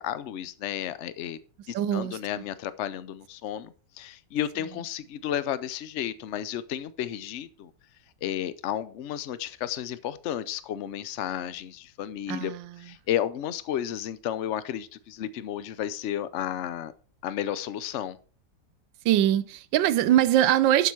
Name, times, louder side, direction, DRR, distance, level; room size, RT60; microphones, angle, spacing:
voice 1, 0.0-1.4 1.7-7.7 8.2-12.5 12.8-16.9 17.2-18.2, left 10 dB, 85° left, 0.6 m, -32 dB
voice 2, 1.7-2.4 12.3-12.9 19.0-20.9, right 12 dB, 80° right, 1.4 m, -23 dB
11.5 x 5.9 x 4.6 m
omnidirectional pair, 2.0 m